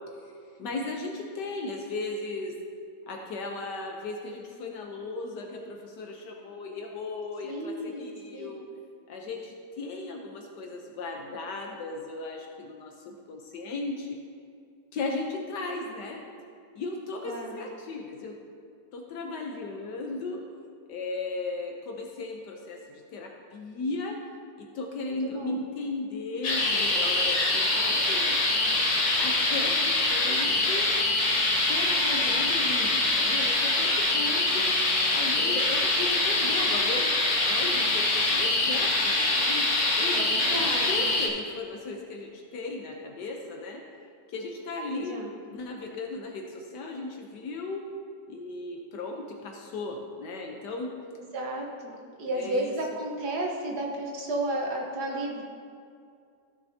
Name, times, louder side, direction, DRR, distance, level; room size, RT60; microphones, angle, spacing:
voice 1, 0.6-2.5 3.1-8.6 9.1-14.1 14.9-16.2 16.7-18.3 18.9-20.4 20.9-22.8 23.1-24.2 24.6-28.3 29.2-30.9 31.5-34.7 35.1-37.1 37.5-39.6 39.9-40.6 40.9-43.8 44.3-47.8 48.3-50.9 52.3-53.0, left 3 dB, 75° left, 1 dB, 1.4 m, -36 dB
voice 2, 7.4-8.5 17.3-17.6 25.0-25.6 40.1-41.1 44.9-45.3 51.2-55.4, right 1 dB, 65° right, -1 dB, 1.7 m, -33 dB
sound 1, 26.4-41.3, left 2 dB, 50° left, 1.1 m, -24 dB
14.5 x 6.8 x 2.8 m, 2.3 s
omnidirectional pair, 1.9 m